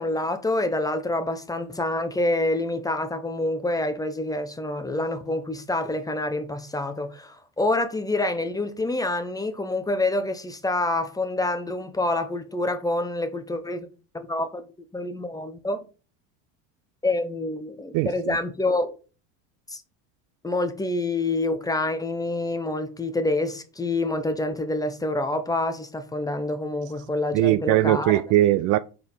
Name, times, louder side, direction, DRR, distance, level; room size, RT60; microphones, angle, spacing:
voice 1, 0.0-13.9 14.1-14.6 14.9-15.8 17.0-19.0 19.7-19.8 20.4-28.1, left 2 dB, 10° left, 0.9 m, -27 dB
voice 2, 17.9-18.3 27.3-28.8, right 16 dB, 55° right, 0.4 m, -20 dB
4.4 x 4.3 x 5.4 m
supercardioid pair, 105°, 38 cm